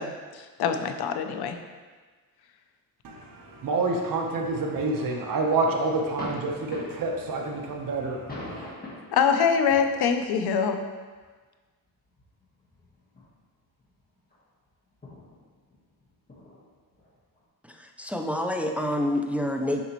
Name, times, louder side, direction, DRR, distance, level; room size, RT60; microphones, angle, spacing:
voice 1, 0.0-1.6 9.1-10.8, left 6 dB, 85° left, 7 dB, 0.6 m, -24 dB
voice 2, 3.0-8.7, right 3 dB, 60° right, 1 dB, 1.0 m, -28 dB
sound 1, 4.3-5.4 5.7-9.2 9.7-10.3 11.2-11.3 12.1-13.3 13.6-14.0 14.3-14.4 15.0-17.4, left 1 dB, 25° left, 1.5 m, -43 dB
voice 3, 17.7-19.8, left 1 dB, 5° right, 3 dB, 0.4 m, -28 dB
6.9 x 5.0 x 3.1 m, 1.4 s
cardioid pair, 105°, 37 cm